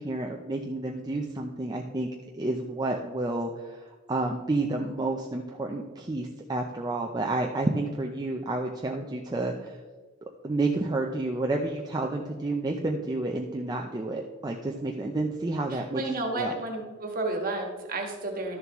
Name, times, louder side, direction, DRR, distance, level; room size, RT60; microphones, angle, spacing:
voice 1, 0.0-2.1 2.3-9.8 10.4-16.0 16.4-16.5, right 2 dB, 20° right, 1 dB, 0.5 m, -30 dB
voice 2, 15.7-18.6, right 2 dB, 40° right, 2 dB, 1.4 m, -32 dB
12.0 x 6.9 x 3.0 m, 1.3 s
head